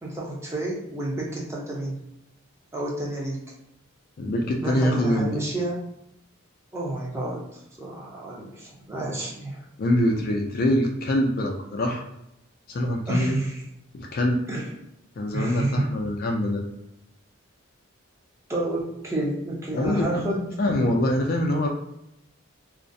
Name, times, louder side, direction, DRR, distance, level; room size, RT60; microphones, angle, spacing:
voice 1, 0.0-2.0 2.7-3.4 4.6-5.8 6.7-9.6 13.1-13.6 14.5-14.7 15.3-15.9 18.5-20.5, right 1 dB, 15° right, -4 dB, 0.5 m, -30 dB
voice 2, 4.2-5.4 9.8-12.0 12.7-13.3 13.9-14.4 15.2-16.6 19.7-20.3 20.6-21.7, left 1 dB, 45° left, 2 dB, 0.3 m, -24 dB
2.4 x 2.0 x 2.5 m, 0.82 s
head